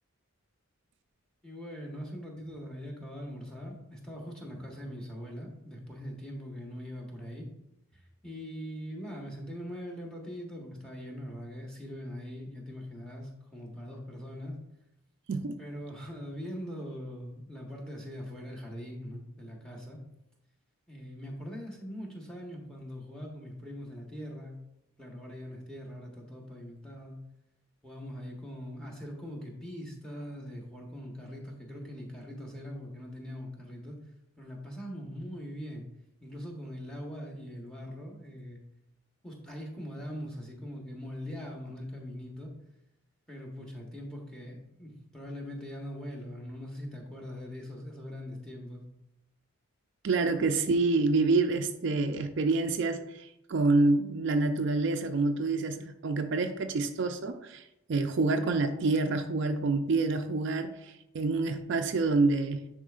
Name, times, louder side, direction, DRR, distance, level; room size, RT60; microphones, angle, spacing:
voice 1, 1.4-7.5 7.9-14.6 15.6-20.0 20.9-24.6 25.0-27.2 27.8-34.0 34.4-35.9 36.2-38.6 39.2-42.5 43.3-48.8, equal, 5° left, -1 dB, 1.1 m, -42 dB
voice 2, 15.3-15.6 50.0-62.7, right 3 dB, 55° right, 6 dB, 0.4 m, -27 dB
10.0 x 4.3 x 2.4 m, 0.87 s
head